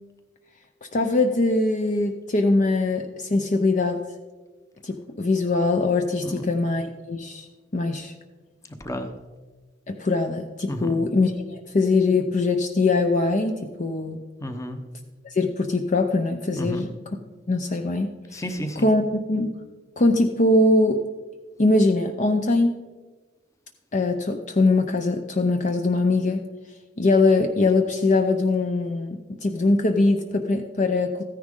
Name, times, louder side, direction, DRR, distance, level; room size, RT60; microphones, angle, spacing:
voice 1, 0.9-4.0 4.8-7.5 7.7-8.1 9.9-14.2 15.3-16.9 17.5-18.1 18.8-19.0 19.3-19.6 20.0-21.0 21.6-22.8 23.9-26.4 27.0-31.2, left 2 dB, 40° left, 5 dB, 0.6 m, -22 dB
voice 2, 8.7-9.1 10.7-11.0 14.4-14.8 16.6-16.9 18.3-18.9, equal, 15° left, 7 dB, 0.9 m, -32 dB
14.5 x 10.0 x 3.7 m, 1.3 s
head